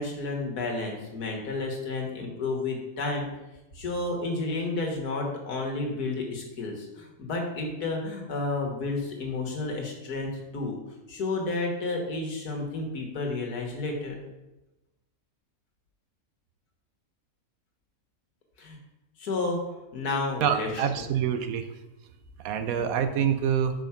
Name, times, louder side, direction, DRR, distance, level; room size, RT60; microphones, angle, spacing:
voice 1, 0.0-3.3 3.7-10.8 11.1-14.2 18.6-18.8 19.2-19.6 19.9-20.8 22.6-22.9, left 3 dB, 85° left, 1 dB, 1.8 m, -31 dB
voice 2, 20.4-21.7 22.4-23.7, right 8 dB, 70° right, 9 dB, 1.0 m, -26 dB
5.1 x 4.9 x 5.8 m, 1.0 s
omnidirectional pair, 1.6 m